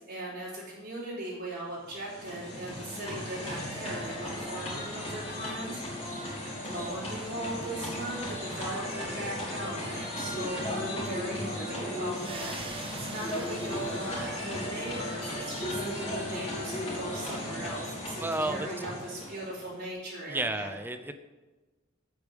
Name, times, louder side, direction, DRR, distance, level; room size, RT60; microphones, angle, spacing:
voice 1, 0.0-6.1 6.4-20.7, right 1 dB, 55° right, -8 dB, 3.8 m, -39 dB
sound 1, 1.7-19.8, left 1 dB, 30° left, 3.5 m, -36 dB
sound 2, 12.0-15.1, right 3 dB, 25° right, 1.2 m, -45 dB
voice 2, 18.2-18.7 20.3-21.1, right 2 dB, 10° right, 9 dB, 0.6 m, -31 dB
8.6 x 8.4 x 5.3 m, 1.2 s
head